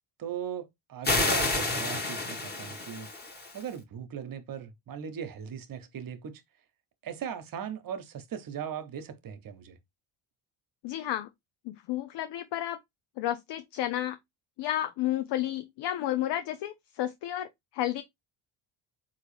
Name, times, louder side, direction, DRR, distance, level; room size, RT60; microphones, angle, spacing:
voice 1, 0.2-3.1 3.5-6.4 7.0-9.8, right 8 dB, 45° right, 0.8 m, -39 dB
sound 1, 1.0-3.6, left 2 dB, 20° left, 1.3 m, -29 dB
voice 2, 10.8-11.3 11.7-12.8 13.2-14.2 14.6-17.5 17.7-18.0, left 13 dB, 55° left, 0.5 m, -31 dB
3.9 x 2.7 x 3.1 m
supercardioid pair, 75°, 50 cm